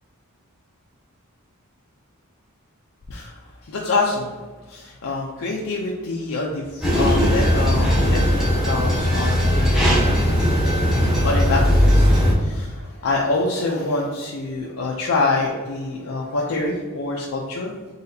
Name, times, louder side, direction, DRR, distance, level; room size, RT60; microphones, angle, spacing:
voice 1, 3.1-4.3 4.7-9.9 11.2-17.7, left 3 dB, 70° left, -3 dB, 0.5 m, -26 dB
sound 1, 6.8-12.3, equal, ahead, 0.8 m, -18 dB
4.0 x 3.9 x 2.7 m, 1.4 s
head